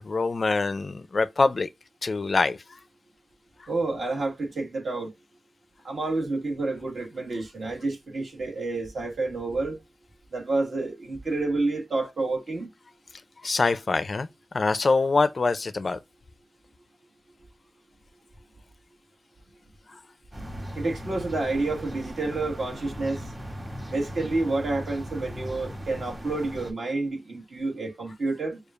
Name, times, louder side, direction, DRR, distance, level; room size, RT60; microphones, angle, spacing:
voice 1, 0.0-1.7 2.0-2.6 3.6-3.7 13.4-14.3 14.5-16.0, left 3 dB, 40° left, 0.4 m, -24 dB
voice 2, 3.7-5.1 5.8-9.8 10.3-12.7 20.7-23.2 23.9-28.6, right 3 dB, 55° right, 1.6 m, -29 dB
sound 1, 20.3-26.7, equal, 25° right, 1.9 m, -38 dB
6.7 x 2.3 x 2.4 m
wide cardioid pair, 120°, 0 cm